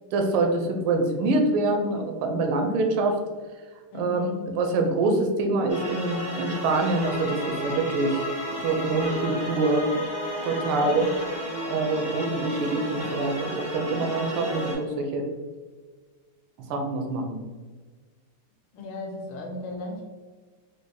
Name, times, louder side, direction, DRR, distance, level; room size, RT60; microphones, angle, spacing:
voice 1, 0.1-3.2 3.9-8.3 8.6-9.9 10.5-11.1 11.7-15.3 16.7-17.4, right 2 dB, 85° right, 4 dB, 1.5 m, -25 dB
voice 2, 3.9-4.4 10.7-11.1 18.7-20.0, left 2 dB, 80° left, 1 dB, 1.4 m, -36 dB
sound 1, 5.7-14.7, equal, 10° left, 0.4 m, -33 dB
4.6 x 2.1 x 2.6 m, 1.4 s
omnidirectional pair, 2.3 m